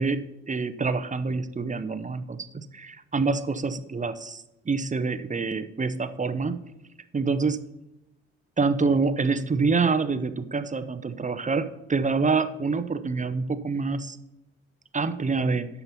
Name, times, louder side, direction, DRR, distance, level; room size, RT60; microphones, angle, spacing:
voice 1, 0.0-6.6 7.1-7.6 8.6-14.2 14.9-15.7, right 4 dB, 20° right, 12 dB, 0.8 m, -26 dB
9.5 x 5.7 x 5.8 m, 0.92 s
hypercardioid pair, 45°, 35 cm